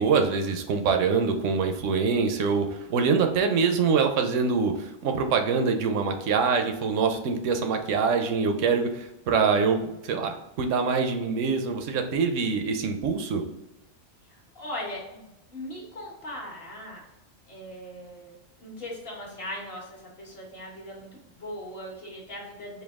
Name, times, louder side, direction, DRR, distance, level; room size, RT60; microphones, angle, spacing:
voice 1, 0.0-13.4, right 5 dB, 70° right, 5 dB, 0.9 m, -24 dB
voice 2, 14.3-17.0 17.5-18.3 18.6-22.8, left 1 dB, 50° left, -4 dB, 1.4 m, -39 dB
4.5 x 2.6 x 3.5 m, 0.91 s
omnidirectional pair, 1.4 m